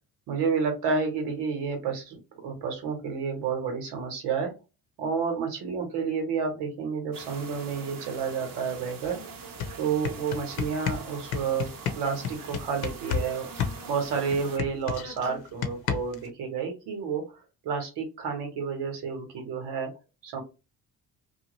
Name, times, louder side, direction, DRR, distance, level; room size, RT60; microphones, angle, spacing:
voice 1, 0.3-4.5 5.0-9.2 9.8-11.7 11.9-19.9 20.2-20.4, right 5 dB, 75° right, 4 dB, 1.2 m, -30 dB
sound 1, 7.1-14.6, right 5 dB, 55° right, 0.9 m, -43 dB
sound 2, 9.0-9.1 9.4-13.3 13.6-16.3, left 7 dB, 70° left, 0.8 m, -31 dB
2.7 x 2.4 x 3.0 m, 0.28 s
supercardioid pair, 60°, 40 cm